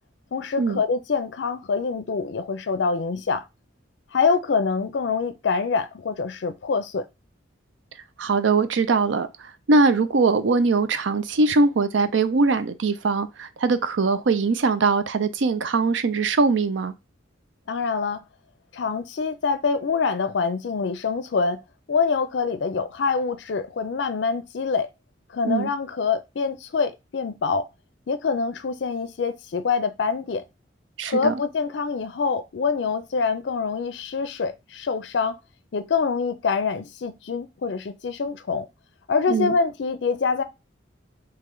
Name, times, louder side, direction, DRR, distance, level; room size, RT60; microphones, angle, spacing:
voice 1, 0.3-3.4 4.1-7.1 17.7-18.2 18.7-21.6 21.9-24.9 25.3-27.7 28.1-30.4 31.0-35.4 35.7-38.7 39.1-40.4, left 5 dB, 65° left, 0.4 m, -25 dB
voice 2, 8.2-16.9 25.4-25.7 31.0-31.4 39.3-39.5, right 3 dB, 80° right, 0.5 m, -21 dB
3.2 x 2.9 x 3.7 m
head